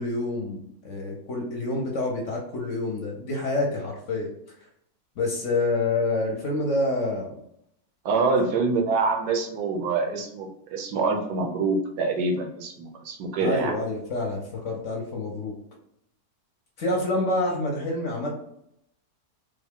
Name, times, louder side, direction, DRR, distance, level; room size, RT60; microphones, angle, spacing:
voice 1, 0.0-4.3 5.2-7.3 13.4-15.6 16.8-18.3, left 2 dB, 60° left, -1 dB, 1.0 m, -27 dB
voice 2, 8.0-13.7, right 3 dB, 85° right, 2 dB, 1.2 m, -25 dB
3.4 x 2.2 x 3.5 m, 0.75 s
omnidirectional pair, 1.6 m